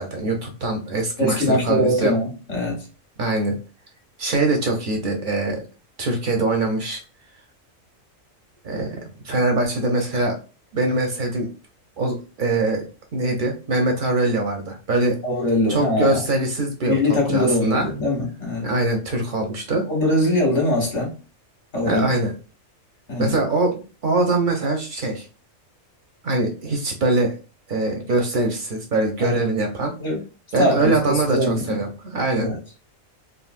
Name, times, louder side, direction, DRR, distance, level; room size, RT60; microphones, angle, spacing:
voice 1, 0.0-2.1 3.2-3.5 4.2-5.6 6.0-7.0 8.6-9.0 9.2-10.3 10.7-11.5 12.0-12.8 13.1-15.2 15.7-17.9 18.6-19.8 21.8-22.3 23.2-23.7 24.0-25.3 26.2-27.3 27.7-29.9 30.5-32.5, right 2 dB, 55° right, 2 dB, 0.6 m, -23 dB
voice 2, 1.2-2.9 15.2-16.2 16.9-18.6 19.9-21.1 21.7-22.0 23.1-23.3 29.2-29.4 30.0-30.2 30.6-31.8 32.3-32.6, left 1 dB, 60° left, -1 dB, 1.6 m, -22 dB
3.8 x 2.0 x 2.4 m, 0.34 s
omnidirectional pair, 1.4 m